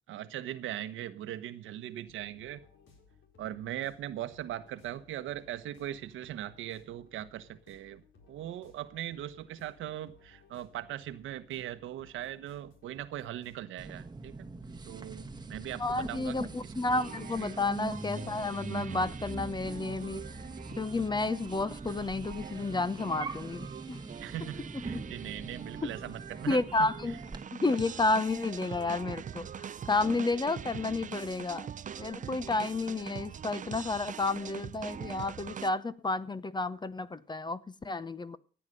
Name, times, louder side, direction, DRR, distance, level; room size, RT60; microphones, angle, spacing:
voice 1, 0.1-2.6 3.4-8.0 8.3-14.4 14.9-16.4 16.6-16.7 17.4-17.5 24.2-26.9, right 12 dB, 85° right, 1.2 m, -40 dB
sound 1, 2.0-13.6, left 4 dB, 75° left, 4.3 m, -61 dB
sound 2, 13.8-27.4, right 3 dB, 20° right, 1.3 m, -42 dB
voice 2, 15.8-20.2 20.8-24.0 24.9-25.0 25.8-25.9 26.5-27.2 27.5-31.7 32.0-38.4, left 3 dB, 20° left, 0.9 m, -31 dB
sound 3, 16.9-35.7, right 8 dB, 40° right, 0.6 m, -44 dB
14.5 x 9.2 x 6.8 m
cardioid pair, 90°, 20 cm